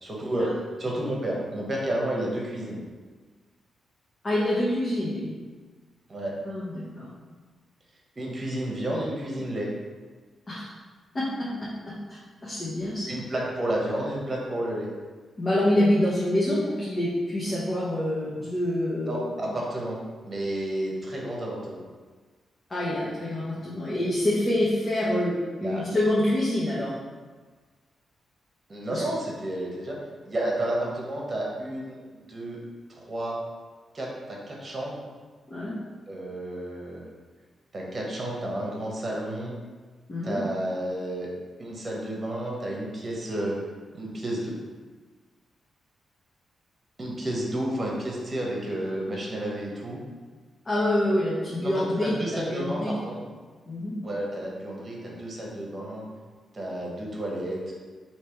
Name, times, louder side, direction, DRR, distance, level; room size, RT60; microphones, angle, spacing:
voice 1, 0.0-2.8 6.1-6.3 8.2-9.7 13.1-14.9 19.1-20.0 20.2-21.8 25.0-25.1 25.5-25.9 28.7-30.0 30.2-32.6 32.9-33.4 33.9-35.0 36.1-37.1 37.7-39.5 40.2-41.3 41.6-43.6 43.9-44.5 47.0-50.0 51.0-51.2 51.5-53.2 54.0-56.0 56.5-57.6, right 1 dB, 35° right, -2 dB, 1.1 m, -31 dB
voice 2, 4.2-5.3 6.4-7.1 10.5-10.7 11.1-11.9 12.4-13.2 15.4-19.5 22.7-26.9 28.9-29.0 35.5-35.7 40.1-40.4 50.6-53.0 53.7-54.0, left 1 dB, 30° left, -8 dB, 1.0 m, -26 dB
3.3 x 2.9 x 4.5 m, 1.4 s
cardioid pair, 80°, 0 cm